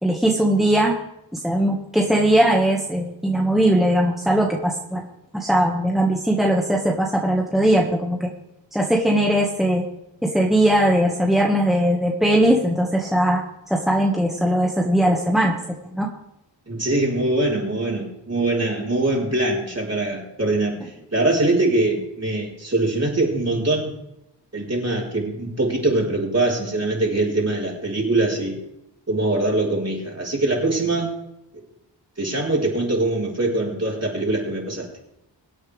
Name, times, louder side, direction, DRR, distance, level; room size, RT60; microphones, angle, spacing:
voice 1, 0.0-0.9 1.3-5.1 5.3-8.3 8.7-9.8 10.2-13.4 13.7-16.1, right 1 dB, ahead, -2 dB, 1.9 m, -20 dB
voice 2, 16.7-23.9 24.5-28.6 29.1-31.1 32.2-34.9, right 2 dB, 35° right, -3 dB, 4.7 m, -23 dB
23.5 x 8.8 x 3.6 m, 0.85 s
wide cardioid pair, 65°, 44 cm